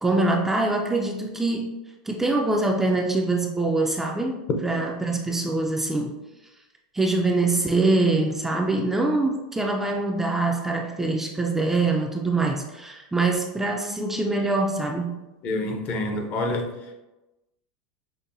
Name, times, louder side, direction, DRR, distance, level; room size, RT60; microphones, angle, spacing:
voice 1, 0.0-1.7 2.1-6.2 6.9-15.2, right 2 dB, 10° right, 1 dB, 0.3 m, -24 dB
voice 2, 15.4-17.0, left 2 dB, 45° left, 4 dB, 0.6 m, -28 dB
5.4 x 2.1 x 2.6 m, 1.0 s
supercardioid pair, 120°, 4 cm